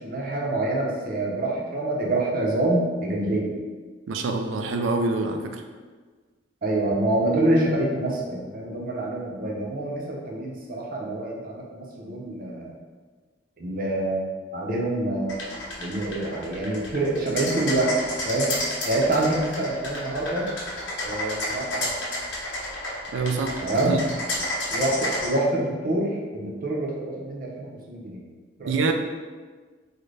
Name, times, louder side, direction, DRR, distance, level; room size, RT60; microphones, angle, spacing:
voice 1, 0.0-3.5 6.6-12.7 13.6-15.4 15.8-17.9 18.2-18.5 18.9-20.5 21.0-21.9 23.6-24.0 24.7-28.2 28.6-28.7, right 1 dB, 50° right, -2 dB, 0.6 m, -26 dB
voice 2, 4.1-5.6 23.1-23.6 23.8-24.0 28.7-28.9, right 3 dB, 85° right, 5 dB, 0.3 m, -25 dB
sound 1, 15.3-25.3, left 1 dB, 85° left, 0.8 m, -31 dB
3.8 x 2.1 x 3.2 m, 1.5 s
head